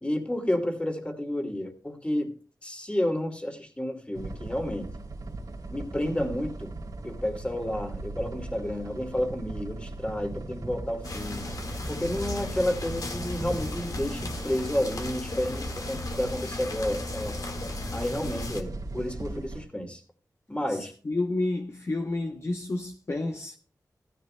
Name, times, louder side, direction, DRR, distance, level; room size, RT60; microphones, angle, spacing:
voice 1, 0.0-2.3 2.6-4.9 5.7-6.7 7.0-11.5 11.9-17.4 17.9-20.0 20.5-20.9, left 1 dB, 15° left, 2.5 m, -31 dB
sound 1, 4.1-19.6, right 2 dB, 85° right, 2.7 m, -39 dB
sound 2, 11.0-18.6, left 2 dB, 65° left, 1.7 m, -36 dB
voice 2, 21.1-23.6, left 2 dB, 45° left, 1.0 m, -30 dB
15.5 x 14.0 x 2.2 m
cardioid pair, 55°, 7 cm